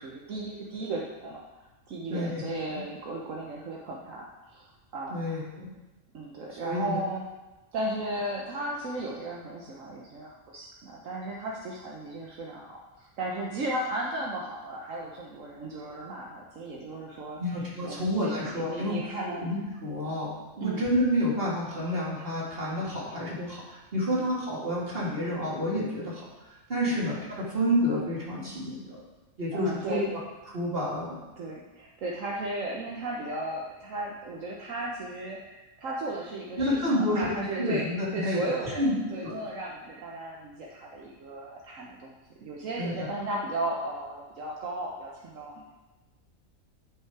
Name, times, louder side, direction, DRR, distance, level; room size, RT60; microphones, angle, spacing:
voice 1, 0.0-1.4 1.9-4.7 4.9-5.5 6.1-7.2 7.7-17.4 17.8-19.5 20.6-20.9 24.2-24.3 26.9-27.0 29.5-30.1 31.4-42.1 42.4-45.7, right 2 dB, 75° right, -3 dB, 1.4 m, -35 dB
voice 2, 2.1-2.4 5.1-5.4 6.6-7.0 17.4-19.0 19.4-29.0 29.4-30.2 30.5-31.2 36.6-37.3 37.6-38.4 38.8-39.3 42.8-43.1, equal, 45° right, -6 dB, 2.7 m, -29 dB
11.0 x 5.7 x 4.7 m, 1.1 s
omnidirectional pair, 1.4 m